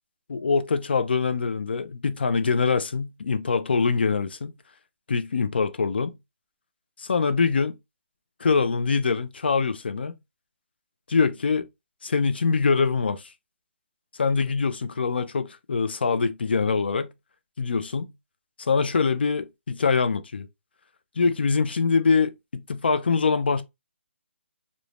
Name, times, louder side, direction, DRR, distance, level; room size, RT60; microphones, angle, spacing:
voice 1, 0.3-4.5 5.1-6.1 7.0-7.7 8.4-10.1 11.1-11.7 12.0-13.3 14.2-17.1 17.6-18.1 18.6-20.5 21.2-23.6, left 5 dB, 55° left, 0.4 m, -24 dB
2.5 x 2.1 x 3.1 m
hypercardioid pair, 175°, 7 cm